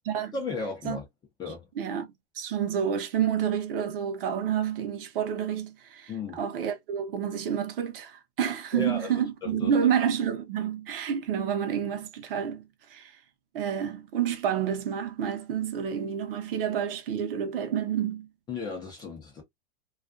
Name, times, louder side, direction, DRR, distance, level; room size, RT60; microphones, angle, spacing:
voice 1, 0.3-1.1 1.4-1.7 6.1-6.4 8.7-9.8 18.5-19.4, left 4 dB, 15° left, 0.5 m, -35 dB
voice 2, 1.8-12.6 12.9-13.1 13.5-18.3, right 8 dB, 55° right, 0.8 m, -29 dB
2.3 x 2.3 x 2.4 m
hypercardioid pair, 135°, 32 cm